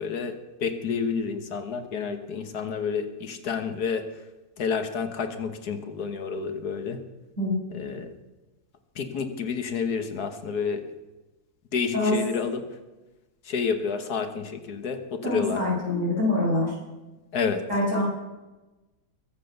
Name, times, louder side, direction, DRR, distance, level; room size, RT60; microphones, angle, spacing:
voice 1, 0.0-4.1 4.6-7.0 7.7-8.1 8.9-10.8 11.7-12.6 13.4-15.6 17.3-17.6, left 5 dB, 75° left, 8 dB, 1.7 m, -29 dB
voice 2, 15.2-16.8 17.7-18.0, left 1 dB, 50° right, -5 dB, 7.1 m, -25 dB
22.0 x 7.6 x 6.6 m, 1.1 s
omnidirectional pair, 1.7 m